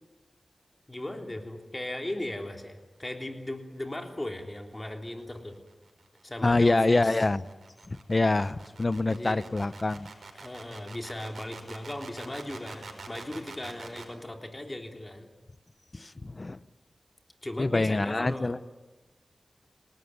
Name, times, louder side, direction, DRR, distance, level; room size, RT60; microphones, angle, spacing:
voice 1, 0.9-5.5 6.2-7.2 9.0-9.4 10.4-15.3 17.4-18.5, left 1 dB, 20° left, 4 dB, 3.3 m, -37 dB
sound 1, 4.9-14.1, right 4 dB, 80° right, 5.0 m, -46 dB
voice 2, 6.4-7.4 7.9-10.1 15.9-16.6 17.6-18.6, left 2 dB, 35° left, 15 dB, 0.8 m, -25 dB
28.5 x 18.5 x 9.6 m, 1.2 s
wide cardioid pair, 80°, 0 cm